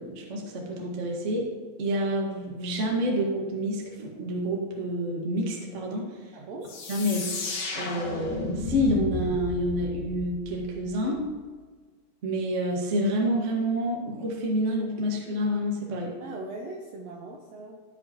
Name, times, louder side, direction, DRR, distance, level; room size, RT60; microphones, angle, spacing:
voice 1, 0.0-1.5 1.8-6.3 6.9-11.2 12.2-16.1, equal, 60° right, -1 dB, 0.7 m, -28 dB
voice 2, 6.3-6.7 16.2-17.8, right 2 dB, 85° right, 1 dB, 1.5 m, -39 dB
sound 1, 6.7-11.2, left 2 dB, 60° left, 2.4 m, -34 dB
14.5 x 5.2 x 2.9 m, 1.5 s
omnidirectional pair, 3.9 m